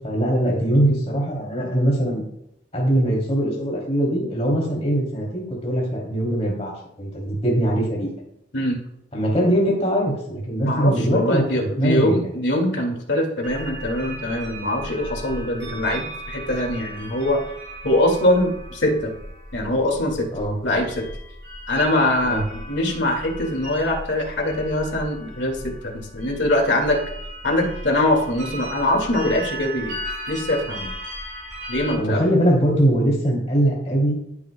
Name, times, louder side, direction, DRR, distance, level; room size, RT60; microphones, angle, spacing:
voice 1, 0.0-2.2 2.7-8.1 9.1-12.3 20.3-20.5 22.3-22.4 32.0-34.2, right 1 dB, 35° left, -3 dB, 2.9 m, -21 dB
voice 2, 10.6-17.4 17.8-19.1 19.5-20.3 20.6-21.1 21.7-27.0 27.4-29.9 30.3-30.9 31.7-32.3, left 1 dB, 70° left, 1 dB, 2.1 m, -23 dB
sound 1, 13.4-31.9, right 1 dB, 85° right, 4.4 m, -36 dB
15.5 x 8.7 x 2.2 m, 0.78 s
head